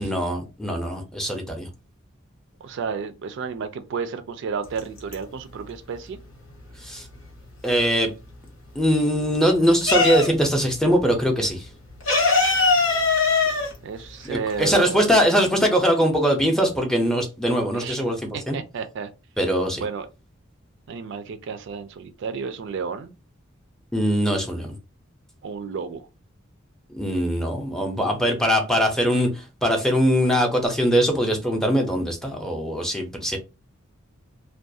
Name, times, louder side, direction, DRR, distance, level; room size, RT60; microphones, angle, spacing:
voice 1, 0.0-1.7 6.8-7.0 7.6-8.1 8.8-11.7 14.2-18.2 18.5-18.6 19.4-19.8 23.9-24.7 26.9-29.3 29.6-33.4, equal, 5° left, 0.5 m, -21 dB
voice 2, 2.6-6.2 13.8-15.1 17.7-18.0 18.5-19.1 19.8-20.1 20.9-23.1 25.4-26.1, right 5 dB, 60° right, 0.3 m, -32 dB
sound 1, 4.7-5.6 5.9-7.9 8.2-10.6 10.9-11.0 11.3-14.9, left 4 dB, 85° left, 0.9 m, -22 dB
2.3 x 2.2 x 2.6 m
head